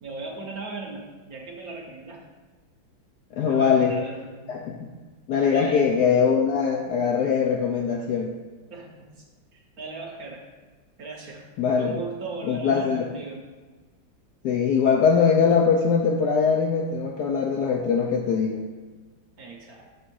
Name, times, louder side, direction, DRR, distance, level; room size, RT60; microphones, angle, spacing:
voice 1, 0.0-2.2 3.4-4.6 5.5-5.9 8.7-9.2 9.5-10.4 11.0-11.4 11.8-13.4 19.4-19.9, right 3 dB, 55° right, 0 dB, 1.1 m, -38 dB
voice 2, 3.3-3.9 4.5-4.9 5.3-8.3 11.6-12.0 12.5-13.0 14.4-18.7, left 6 dB, 75° left, 1 dB, 0.9 m, -22 dB
6.9 x 3.7 x 6.1 m, 1.3 s
omnidirectional pair, 2.2 m